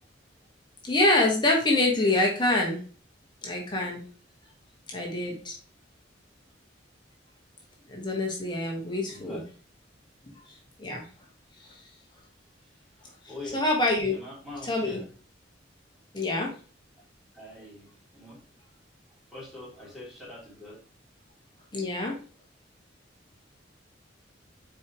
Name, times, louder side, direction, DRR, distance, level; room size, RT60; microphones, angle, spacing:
voice 1, 0.9-2.8 3.4-4.0 4.9-5.5 7.9-9.4 10.8-11.0 11.6-11.8 13.5-14.1 14.6-15.0 16.1-16.5 21.7-22.2, left 2 dB, 25° left, -1 dB, 1.7 m, -25 dB
voice 2, 9.1-9.5 13.3-13.6 14.1-15.1 17.3-18.4 19.3-20.8, left 2 dB, ahead, -8 dB, 3.7 m, -43 dB
7.0 x 4.8 x 3.2 m, 0.39 s
head